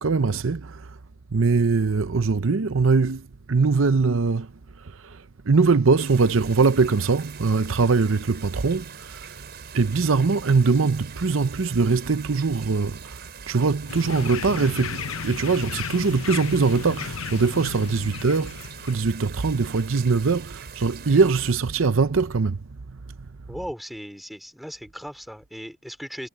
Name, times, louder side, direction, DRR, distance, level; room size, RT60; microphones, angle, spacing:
voice 1, 0.0-1.0 1.3-4.5 4.8-9.5 9.7-13.2 13.5-22.6, right 4 dB, 70° right, 0.7 m, -22 dB
sound 1, 6.0-21.5, right 7 dB, 50° right, 5.6 m, -43 dB
sound 2, 13.9-18.9, left 6 dB, 90° left, 0.8 m, -34 dB
voice 2, 23.5-26.3, equal, ahead, 3.3 m, -37 dB
head